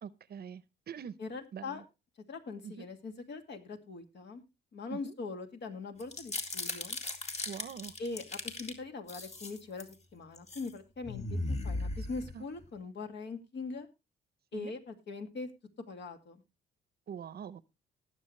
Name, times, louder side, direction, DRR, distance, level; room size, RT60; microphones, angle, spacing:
voice 1, 0.0-1.2 1.5-1.8 2.6-2.9 4.9-5.1 7.5-7.9 12.3-12.5 14.5-14.7 17.1-17.6, right 8 dB, 50° right, 0.8 m, -44 dB
voice 2, 1.2-1.8 2.3-4.4 4.7-7.0 8.0-13.9 14.5-15.5 15.9-16.4, left 4 dB, 60° left, 2.4 m, -42 dB
sound 1, 6.0-8.7 9.1-9.9 10.4-10.7 11.0-12.7, left 2 dB, 35° left, 2.2 m, -37 dB
19.0 x 7.2 x 3.2 m
cardioid pair, 90°, 20 cm